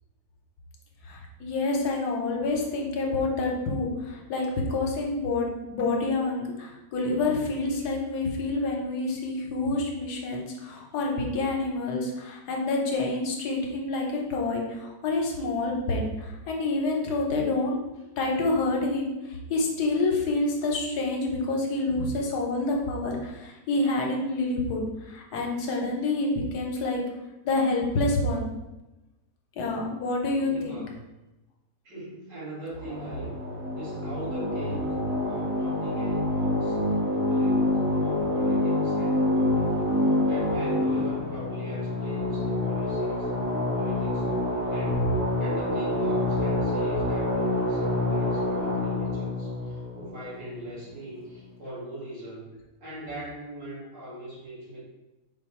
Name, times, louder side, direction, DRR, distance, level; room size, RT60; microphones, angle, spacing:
voice 1, 1.1-17.8 18.2-27.0 27.4-28.5 29.6-30.8, left 2 dB, 70° left, 0 dB, 1.2 m, -28 dB
voice 2, 30.4-30.9 31.8-33.4 33.8-36.8 37.1-43.3 43.7-45.1 45.4-52.5 52.8-54.8, right 1 dB, 85° right, -8 dB, 2.4 m, -40 dB
sound 1, 32.7-50.9, left 1 dB, 45° right, 0.8 m, -27 dB
4.5 x 2.3 x 4.1 m, 1.0 s
omnidirectional pair, 1.9 m